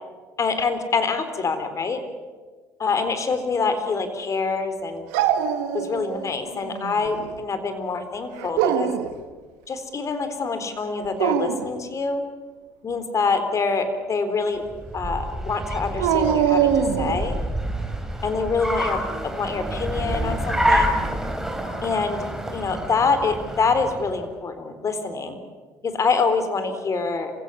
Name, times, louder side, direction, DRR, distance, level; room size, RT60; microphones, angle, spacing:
voice 1, 0.4-2.0 2.8-5.0 5.7-8.9 9.7-12.2 12.8-14.6 14.9-17.4 18.2-21.0 21.8-22.3 22.5-25.4 25.8-27.3, left 4 dB, 40° left, 9 dB, 3.9 m, -25 dB
Dog, 5.1-6.3 6.6-7.3 8.4-9.1 11.0-11.7 16.0-17.3, right 8 dB, 80° right, 1.8 m, -23 dB
Car, 14.7-24.2, equal, 5° right, 4.1 m, -28 dB
27.0 x 16.5 x 9.8 m, 1.5 s
hypercardioid pair, 60°, 8 cm